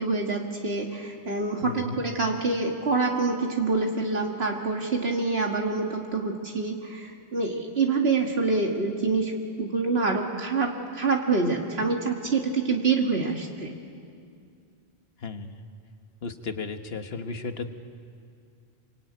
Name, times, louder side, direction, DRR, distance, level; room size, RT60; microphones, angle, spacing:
voice 1, 0.0-13.7, right 4 dB, 75° right, 1 dB, 2.1 m, -26 dB
voice 2, 1.6-2.0 15.2-15.6 16.2-17.7, left 4 dB, 70° left, 7 dB, 1.5 m, -34 dB
27.0 x 23.0 x 9.4 m, 2.4 s
omnidirectional pair, 1.1 m